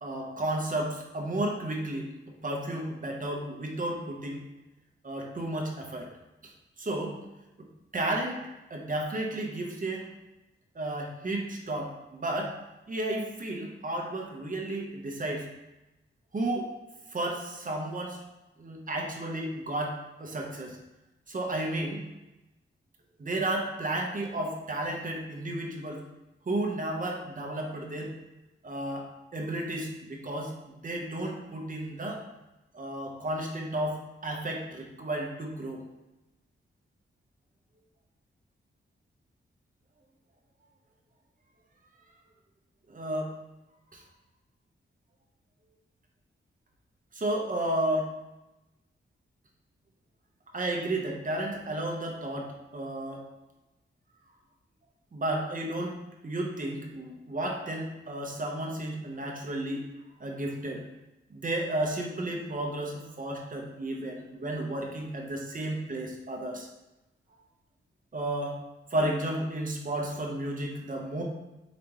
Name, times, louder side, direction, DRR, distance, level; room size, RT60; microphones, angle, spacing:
voice 1, 0.0-2.1 2.4-4.4 5.0-6.1 6.8-7.2 7.9-8.4 8.7-10.1 10.7-12.5 12.9-15.4 16.3-16.7 17.1-18.2 18.6-20.8 21.3-22.0 23.2-26.0 26.5-28.1 28.6-32.2 32.7-35.8 42.9-43.3 43.9-44.0 47.1-48.1 50.5-53.2 55.1-56.0 56.2-59.8 60.2-60.9 61.3-66.7 68.1-68.6 68.9-71.2, right 1 dB, 40° right, 0 dB, 0.9 m, -32 dB
5.0 x 3.4 x 3.0 m, 1.0 s
wide cardioid pair, 80°, 21 cm